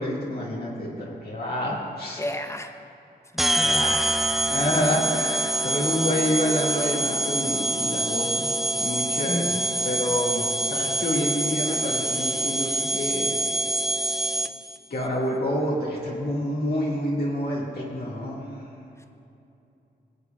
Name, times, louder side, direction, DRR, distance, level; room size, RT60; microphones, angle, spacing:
voice 1, 0.0-2.2 3.5-4.1 4.5-8.5 8.8-9.5 9.8-13.4 14.9-18.6, equal, 60° left, -5 dB, 1.8 m, -28 dB
voice 2, 2.2-2.8 3.3-3.9 9.3-9.7 19.0-19.1, left 1 dB, 15° left, 5 dB, 0.8 m, -32 dB
sound 1, 3.4-14.8, right 1 dB, ahead, 0.4 m, -25 dB
22.5 x 8.3 x 2.3 m, 2.8 s
cardioid pair, 60°, 18 cm